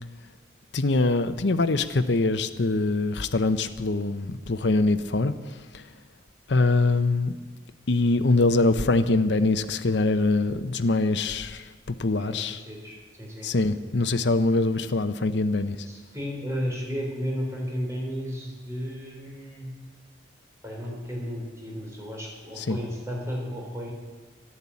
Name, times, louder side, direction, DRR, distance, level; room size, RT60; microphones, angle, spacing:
voice 1, 0.7-5.3 5.7-5.8 6.5-7.4 7.9-12.6 13.4-15.8 22.6-22.8, left 2 dB, 65° left, 10 dB, 0.7 m, -23 dB
voice 2, 12.2-13.5 15.8-19.7 20.6-23.9, equal, 15° right, -2 dB, 3.9 m, -33 dB
12.0 x 11.0 x 8.4 m, 1.3 s
head